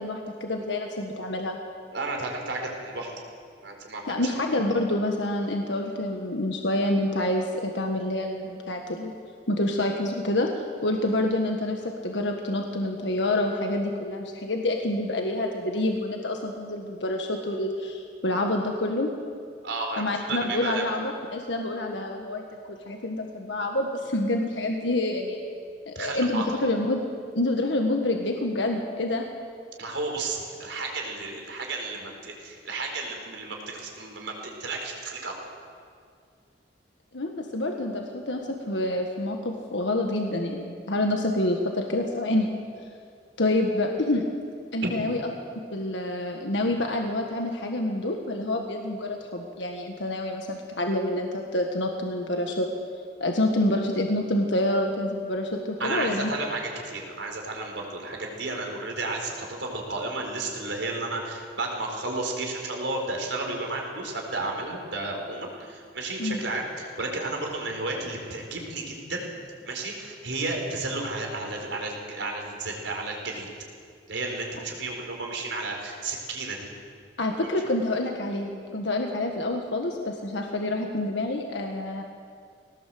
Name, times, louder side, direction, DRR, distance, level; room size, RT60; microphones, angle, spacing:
voice 1, 0.0-1.6 4.1-9.1 9.5-10.5 10.8-19.1 20.0-25.4 25.9-27.0 27.3-29.3 37.1-42.5 43.4-44.2 44.7-45.3 45.7-52.7 53.2-56.3 66.2-66.4 77.2-82.0, left 1 dB, 80° left, 2 dB, 1.6 m, -27 dB
voice 2, 1.9-3.1 3.6-4.2 19.6-21.0 25.9-26.6 29.8-35.4 44.8-44.9 55.8-69.3 69.6-73.5 74.1-76.7 77.3-77.5, right 2 dB, 85° right, 1 dB, 4.3 m, -32 dB
20.5 x 18.5 x 7.8 m, 2.2 s
head